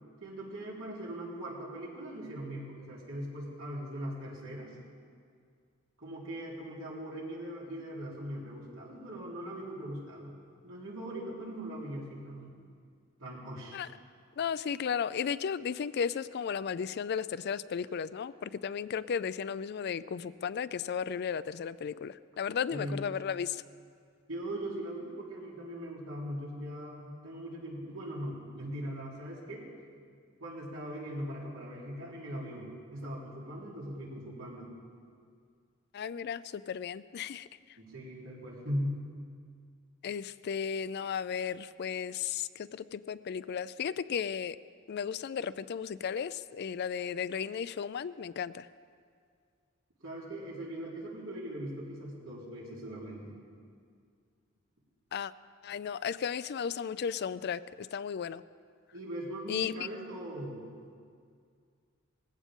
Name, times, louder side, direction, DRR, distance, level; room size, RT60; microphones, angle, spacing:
voice 1, 0.2-4.7 6.0-10.4 10.6-12.5 13.2-13.8 22.7-23.0 24.3-29.7 30.4-34.7 37.8-39.0 50.0-53.4 58.9-60.7, equal, 90° right, -5 dB, 3.7 m, -40 dB
voice 2, 14.4-23.6 35.9-37.5 40.0-44.6 44.9-48.7 55.1-55.3 55.6-58.4 59.5-59.7, left 7 dB, 55° left, 16 dB, 0.4 m, -34 dB
19.5 x 15.5 x 3.7 m, 2.2 s
head